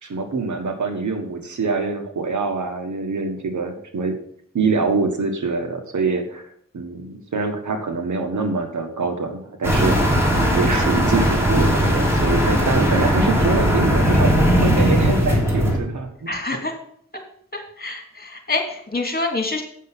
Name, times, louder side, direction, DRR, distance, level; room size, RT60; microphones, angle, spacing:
voice 1, 0.0-4.2 4.5-6.4 6.7-16.4, right 4 dB, 85° right, 5 dB, 1.6 m, -25 dB
sound 1, 9.6-15.8, equal, 10° right, 3.0 m, -18 dB
voice 2, 16.3-16.8 17.5-19.6, left 2 dB, 30° left, 3 dB, 2.6 m, -26 dB
8.2 x 6.8 x 6.0 m, 0.64 s
wide cardioid pair, 70°, 29 cm